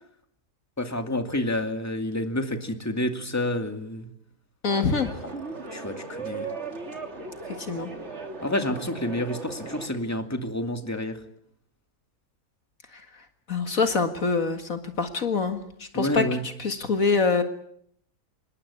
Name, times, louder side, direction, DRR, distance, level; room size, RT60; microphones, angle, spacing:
voice 1, 0.8-4.1 5.7-6.5 8.4-11.2 15.9-16.4, left 1 dB, 10° left, 6 dB, 2.4 m, -29 dB
voice 2, 4.6-5.1 7.6-7.9 12.9-13.0 13.5-17.4, left 4 dB, 60° left, 7 dB, 2.2 m, -25 dB
sound 1, 4.7-9.9, right 3 dB, 45° right, 3.4 m, -37 dB
26.5 x 21.5 x 8.6 m, 0.70 s
omnidirectional pair, 1.6 m